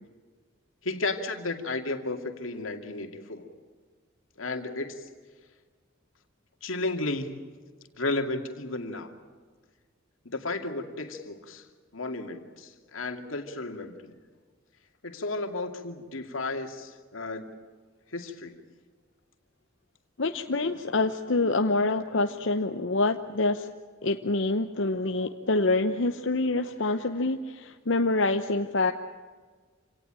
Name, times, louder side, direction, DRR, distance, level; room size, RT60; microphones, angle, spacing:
voice 1, 0.8-3.5 4.4-5.1 6.6-7.4 8.0-9.1 10.2-11.7 11.9-14.2 15.0-17.5 18.1-18.6, left 2 dB, 90° left, 5 dB, 2.4 m, -33 dB
voice 2, 20.2-23.7 24.0-28.9, left 2 dB, 65° left, 6 dB, 0.8 m, -26 dB
27.5 x 18.0 x 8.9 m, 1.5 s
head